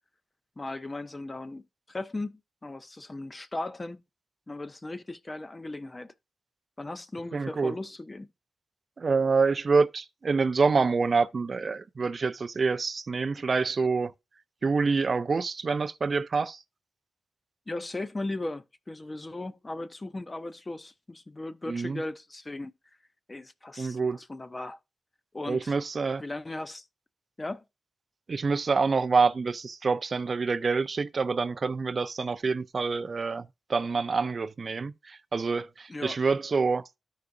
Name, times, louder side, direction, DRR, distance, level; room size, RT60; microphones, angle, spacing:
voice 1, 0.6-4.0 4.5-6.1 6.8-8.3 17.7-22.7 23.3-24.8 25.3-25.7 26.2-26.9 27.4-27.6 35.9-36.2, left 2 dB, 20° left, 0.5 m, -37 dB
voice 2, 7.3-7.7 9.0-14.1 14.6-16.6 21.7-22.0 23.8-24.2 25.5-26.2 28.3-36.9, right 4 dB, 40° right, 0.4 m, -27 dB
13.5 x 4.8 x 2.6 m
wide cardioid pair, 135°, 0 cm